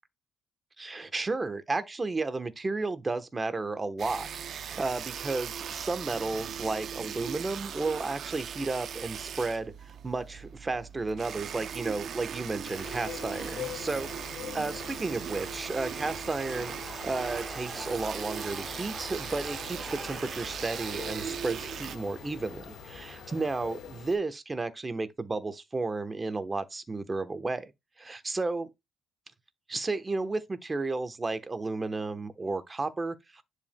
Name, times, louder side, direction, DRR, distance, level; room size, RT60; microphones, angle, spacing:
voice 1, 0.8-9.7 10.0-16.7 17.0-27.7 28.0-28.7 29.7-33.4, right 3 dB, 25° right, 1.0 m, -33 dB
sound 1, 4.0-22.0, right 8 dB, 65° right, 0.6 m, -39 dB
sound 2, 12.6-24.2, left 8 dB, 80° left, 1.7 m, -44 dB
sound 3, 15.6-24.1, equal, 5° right, 1.3 m, -46 dB
10.5 x 4.7 x 2.2 m
cardioid pair, 90°, 0 cm